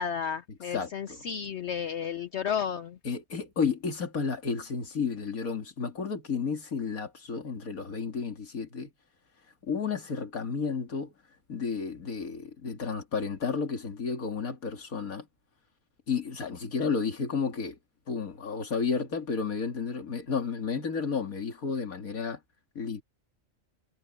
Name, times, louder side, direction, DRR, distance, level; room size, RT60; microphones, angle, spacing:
voice 1, 0.0-3.0, left 7 dB, 60° left, 0.9 m, -32 dB
voice 2, 0.7-1.2 3.0-8.9 9.6-11.1 11.5-15.3 16.1-17.8 18.1-22.4 22.8-23.0, left 5 dB, 85° left, 2.7 m, -32 dB
omnidirectional pair, 1.4 m